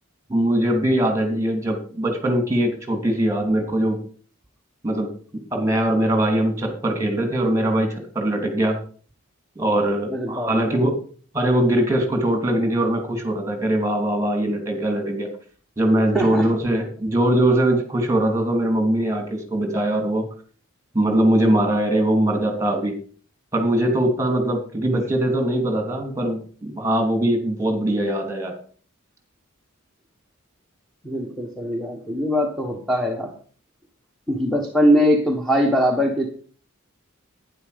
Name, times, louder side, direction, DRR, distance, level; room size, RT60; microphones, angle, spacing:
voice 1, 0.3-4.0 4.8-5.1 5.5-8.8 9.5-11.0 11.3-15.3 15.8-20.3 20.9-22.9 23.5-28.5, right 1 dB, 15° right, 4 dB, 3.2 m, -21 dB
voice 2, 10.1-10.5 16.1-16.5 31.0-33.3 34.3-36.3, equal, ahead, 2 dB, 1.4 m, -21 dB
11.0 x 10.0 x 5.3 m, 0.44 s
head